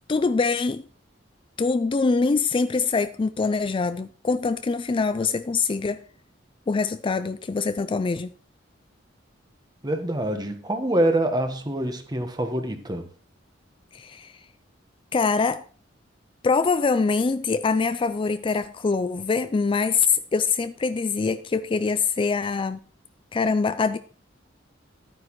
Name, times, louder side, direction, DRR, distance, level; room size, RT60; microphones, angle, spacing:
voice 1, 0.1-0.8 1.6-6.0 6.7-8.3 13.9-14.4 15.1-15.6 16.4-22.8 23.3-24.0, left 4 dB, 25° left, 0.3 m, -24 dB
voice 2, 9.8-13.1, right 1 dB, 20° right, 1.3 m, -25 dB
12.0 x 9.2 x 3.1 m
head